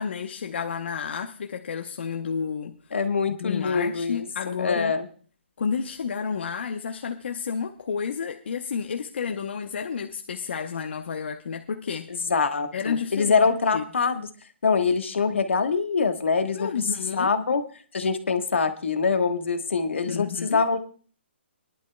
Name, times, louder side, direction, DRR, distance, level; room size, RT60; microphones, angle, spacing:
voice 1, 0.0-2.8 3.3-5.0 5.6-12.1 12.7-13.4 13.7-13.8 16.5-17.3 20.1-20.6, left 6 dB, 65° left, 0.9 m, -31 dB
voice 2, 2.9-4.2 4.6-5.1 12.1-14.3 14.6-16.7 17.1-17.6 17.9-20.8, left 5 dB, 85° left, 1.4 m, -24 dB
23.0 x 11.0 x 2.2 m
hypercardioid pair, 150°, 6 cm